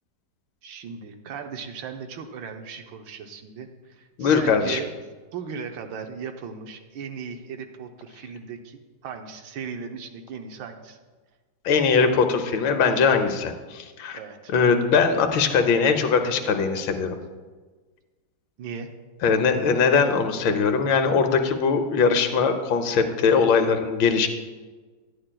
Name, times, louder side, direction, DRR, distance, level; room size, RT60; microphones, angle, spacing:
voice 1, 0.6-4.9 5.3-11.0 13.8-14.5 18.6-18.9, right 6 dB, 80° right, 5 dB, 1.5 m, -37 dB
voice 2, 4.2-4.8 11.6-14.2 14.5-17.2 19.2-24.3, left 5 dB, 85° left, 7 dB, 1.5 m, -21 dB
11.0 x 9.9 x 2.2 m, 1.4 s
omnidirectional pair, 2.0 m